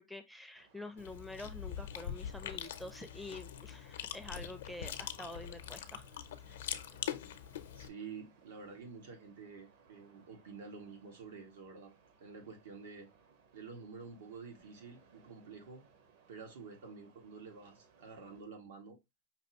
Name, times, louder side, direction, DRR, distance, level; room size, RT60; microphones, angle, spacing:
voice 1, 0.0-6.1 6.5-6.6, left 2 dB, ahead, 0.4 m, -47 dB
sound 1, 0.5-18.4, right 5 dB, 60° right, 1.2 m, -66 dB
Chewing mastication, 1.0-7.9, left 10 dB, 85° left, 0.6 m, -43 dB
voice 2, 7.7-11.9 12.2-13.1 13.5-15.8 16.3-19.0, right 5 dB, 85° right, 1.9 m, -49 dB
5.3 x 3.0 x 2.9 m
supercardioid pair, 170°, 0 cm